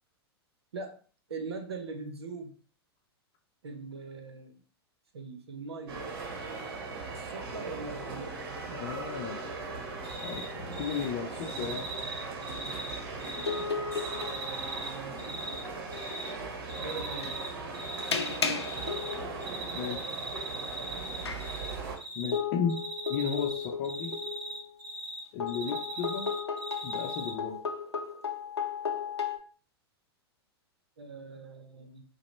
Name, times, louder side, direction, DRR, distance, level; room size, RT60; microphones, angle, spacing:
voice 1, 1.3-2.5 3.6-4.6 5.1-6.1 7.1-8.8 14.4-15.2 16.8-17.3 31.0-32.0, right 4 dB, 75° right, 6 dB, 0.8 m, -42 dB
sound 1, 5.9-22.0, right 3 dB, 55° right, 1.1 m, -39 dB
voice 2, 8.7-9.4 10.2-11.9 19.7-20.1 22.1-22.8 23.1-24.1 25.3-26.3 26.8-27.6, left 6 dB, 40° left, -1 dB, 0.6 m, -34 dB
Cricket, 10.0-10.4 10.7-11.0 11.4-13.6 13.9-15.6 15.9-16.3 16.7-17.5 17.7-19.1 19.4-21.7 22.0-22.4 22.7-25.2 25.5-27.3, right 2 dB, 30° right, 1.6 m, -39 dB
sound 2, 13.3-14.9 15.3-15.6 17.2-17.4 18.1-19.5 19.9-20.0 21.2-21.5 22.3-24.7 25.4-29.4, left 6 dB, 85° left, 0.5 m, -34 dB
4.8 x 2.2 x 3.2 m, 0.40 s
figure-of-eight pair, 100°, 14 cm